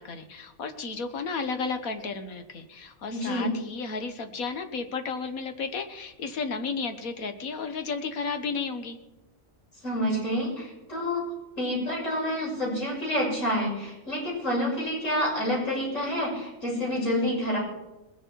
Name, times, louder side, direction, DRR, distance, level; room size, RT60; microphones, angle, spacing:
voice 1, 0.0-9.0, left 4 dB, 80° left, 8 dB, 1.7 m, -33 dB
voice 2, 3.1-3.5 9.8-11.2 11.6-17.6, left 1 dB, 60° left, -4 dB, 6.9 m, -28 dB
20.0 x 10.0 x 4.6 m, 1.0 s
omnidirectional pair, 1.4 m